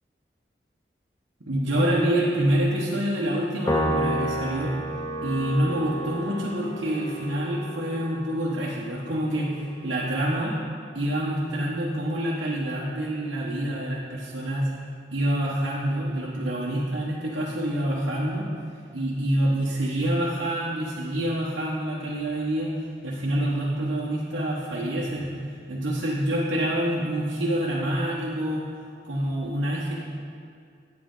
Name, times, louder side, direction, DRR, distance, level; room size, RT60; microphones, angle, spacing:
voice 1, 1.5-4.7 5.2-9.5 9.8-10.5 10.9-14.7 15.1-18.5 18.9-22.7 23.0-25.3 25.7-28.7 29.0-30.0, right 1 dB, 80° right, -7 dB, 1.2 m, -26 dB
Piano, 3.7-10.2, equal, 15° left, 0.5 m, -31 dB
9.5 x 7.7 x 3.8 m, 2.3 s
head